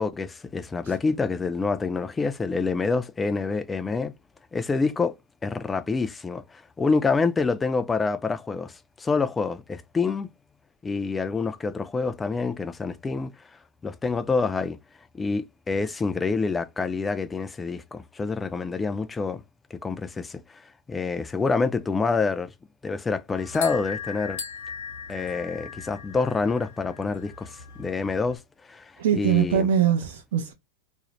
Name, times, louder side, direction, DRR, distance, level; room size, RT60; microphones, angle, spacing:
voice 1, 0.0-4.1 4.5-5.2 5.4-10.3 10.8-13.3 13.8-14.8 15.1-19.4 19.7-20.6 20.9-22.5 22.8-24.4 25.1-28.4 28.7-29.7, left 4 dB, 15° left, 0.3 m, -27 dB
sound 1, 23.3-28.4, left 6 dB, 85° left, 0.8 m, -38 dB
voice 2, 29.0-30.5, right 9 dB, 80° right, 0.5 m, -22 dB
2.5 x 2.0 x 2.9 m
hypercardioid pair, 120°, 0 cm